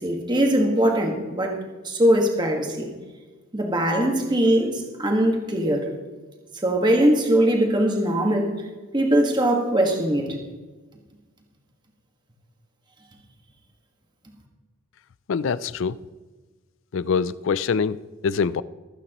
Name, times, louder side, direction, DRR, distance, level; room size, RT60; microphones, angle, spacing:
voice 1, 0.0-1.6 1.8-2.9 3.5-5.9 6.5-8.5 8.9-10.4, right 1 dB, 20° right, 1.5 m, -21 dB
voice 2, 15.3-16.0 16.9-18.0 18.2-18.6, left 5 dB, 60° left, 0.3 m, -24 dB
23.5 x 8.9 x 3.0 m
head